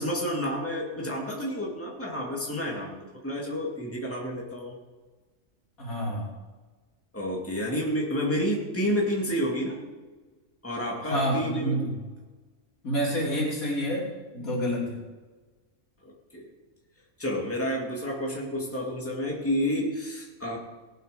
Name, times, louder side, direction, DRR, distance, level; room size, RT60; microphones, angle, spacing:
voice 1, 0.0-4.8 7.1-9.8 10.6-11.8 16.3-16.5 17.2-20.6, equal, 10° left, -2 dB, 2.2 m, -30 dB
voice 2, 5.8-6.3 11.0-12.0 12.8-15.0, equal, 85° left, -3 dB, 3.6 m, -28 dB
18.0 x 7.9 x 5.2 m, 1.3 s
omnidirectional pair, 1.4 m